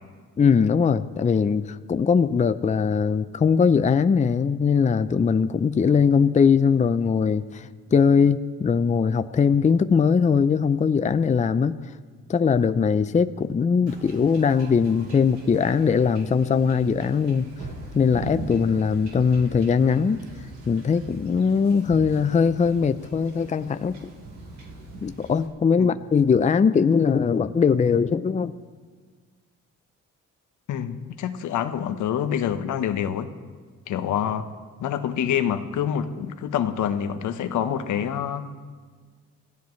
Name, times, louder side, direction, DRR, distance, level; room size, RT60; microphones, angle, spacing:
voice 1, 0.4-11.8 12.3-17.5 17.9-20.2 20.7-24.1 25.0-28.5, left 6 dB, 25° left, 11 dB, 0.5 m, -21 dB
Wind / Ocean / Boat Water vehicle, 13.9-25.5, right 2 dB, 75° right, 3.9 m, -41 dB
voice 2, 30.7-33.3 33.9-34.5 34.8-38.5, left 9 dB, 80° left, 8 dB, 1.2 m, -26 dB
26.0 x 16.5 x 3.2 m, 1.5 s
cardioid pair, 90°, 30 cm